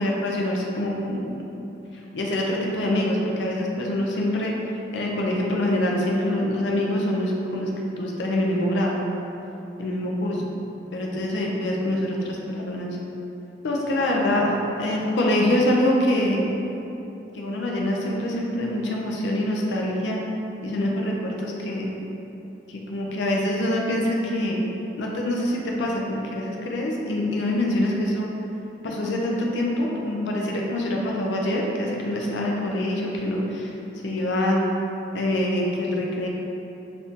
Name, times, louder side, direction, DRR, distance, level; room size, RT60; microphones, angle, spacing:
voice 1, 0.0-1.4 2.1-4.5 4.9-7.7 8.0-9.0 9.8-10.4 10.9-13.0 13.6-16.4 17.3-20.2 20.6-21.9 22.7-24.6 25.0-28.3 28.8-33.7 34.0-34.6 35.1-36.3, left 1 dB, 80° left, -2 dB, 0.4 m, -25 dB
2.7 x 2.5 x 3.5 m, 3.0 s
head